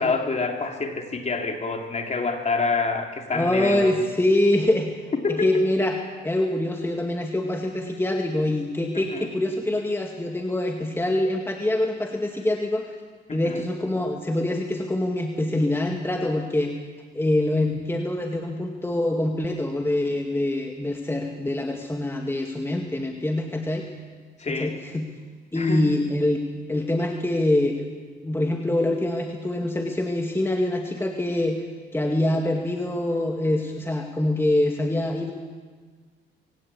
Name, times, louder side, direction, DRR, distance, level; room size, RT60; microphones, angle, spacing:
voice 1, 0.0-3.9 5.2-5.6 8.9-9.3 13.3-13.6 24.4-24.8 25.5-25.9, left 4 dB, 35° left, 3 dB, 3.3 m, -27 dB
voice 2, 3.3-4.9 5.3-6.0 6.2-12.9 13.3-16.7 17.1-23.8 24.5-25.1 25.5-26.4 26.7-27.8 28.2-31.6 31.9-35.3, left 1 dB, 10° left, 2 dB, 2.1 m, -24 dB
22.5 x 18.0 x 8.5 m, 1.5 s
cardioid pair, 90°, 20 cm